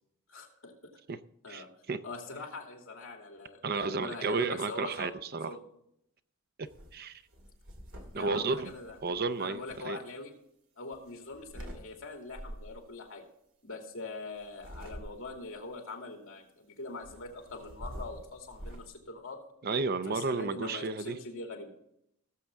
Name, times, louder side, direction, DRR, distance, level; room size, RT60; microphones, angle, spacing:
voice 1, 0.3-0.9 1.4-1.7 2.0-5.7 8.1-9.0 9.4-10.3 10.8-13.2 13.6-19.4 20.1-21.7, left 2 dB, 65° left, 2 dB, 2.6 m, -43 dB
voice 2, 1.5-2.0 3.6-5.5 6.6-7.2 8.1-8.7 9.0-9.6 9.8-10.0 19.6-21.2, right 4 dB, 45° right, 12 dB, 0.5 m, -32 dB
sound 1, 6.6-6.9 7.3-9.8 10.9-11.8 12.3-12.8 14.4-15.5 17.0-18.9, equal, 60° right, 2.3 m, -46 dB
18.0 x 7.4 x 3.5 m, 0.76 s
head